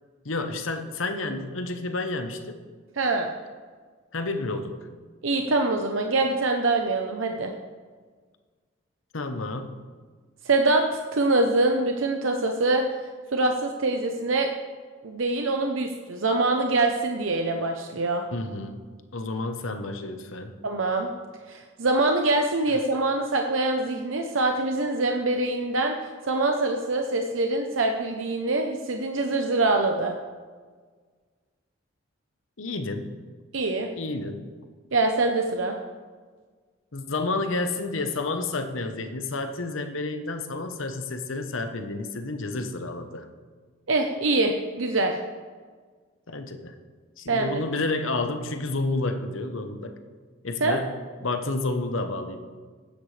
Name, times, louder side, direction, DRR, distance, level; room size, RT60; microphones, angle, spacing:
voice 1, 0.2-2.6 4.1-4.8 9.1-9.8 18.3-20.5 32.6-33.2 34.0-34.5 36.9-43.2 46.3-46.7 47.2-49.9 50.4-50.9 51.2-52.4, left 2 dB, 80° left, 7 dB, 1.1 m, -30 dB
voice 2, 3.0-3.3 5.2-7.5 10.4-12.8 13.3-14.5 15.0-18.2 20.6-21.1 21.5-26.0 26.2-30.1 33.5-33.9 34.9-35.8 43.9-45.1 47.3-47.6 50.6-50.8, right 2 dB, 80° right, 4 dB, 0.8 m, -24 dB
15.0 x 10.5 x 3.4 m, 1.5 s
head